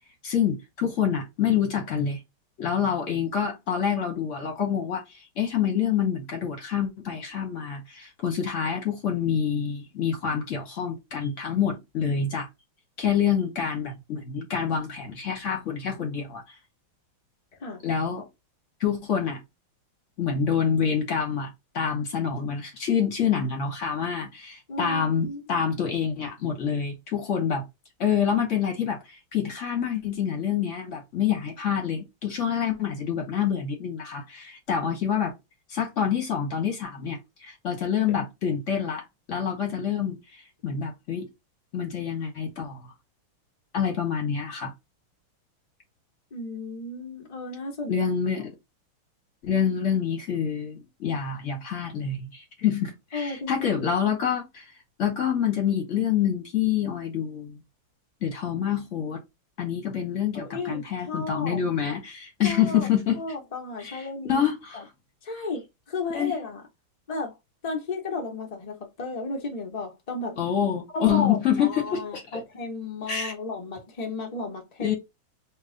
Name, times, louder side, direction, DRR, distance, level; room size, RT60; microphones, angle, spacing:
voice 1, 0.2-2.2 2.6-12.5 13.0-16.4 17.8-18.2 18.8-19.4 20.2-27.6 28.0-35.3 35.7-41.3 41.7-42.8 43.7-44.7 47.9-48.5 49.4-54.7 55.0-57.6 58.2-59.2 59.6-63.2 63.8-64.9 66.1-66.3 70.4-72.4 73.1-73.3 74.8-74.9, left 8 dB, 50° left, 0.9 m, -27 dB
voice 2, 24.7-25.4 38.1-38.2 46.3-48.1 53.1-53.9 60.3-61.6 62.4-62.9 63.1-64.4 64.7-64.8 65.2-66.6 67.1-67.3 67.6-70.4 70.9-74.9, left 3 dB, 80° left, 0.3 m, -34 dB
2.9 x 2.8 x 3.7 m
omnidirectional pair, 2.2 m